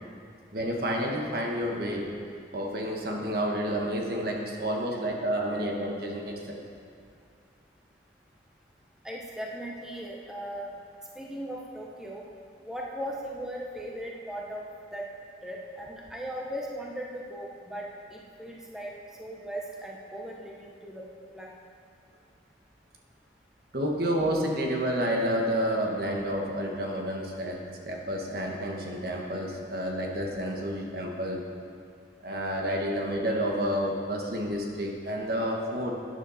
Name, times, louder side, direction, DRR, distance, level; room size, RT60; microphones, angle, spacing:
voice 1, 0.5-2.2 2.5-6.6 23.7-31.4 32.2-35.9, equal, 55° right, 0 dB, 1.5 m, -30 dB
voice 2, 9.0-10.7 11.2-12.2 12.6-14.6 14.9-15.1 15.4-18.9 19.2-21.1 21.3-21.5, equal, 5° right, -2 dB, 0.9 m, -38 dB
12.5 x 9.8 x 4.2 m, 2.4 s
head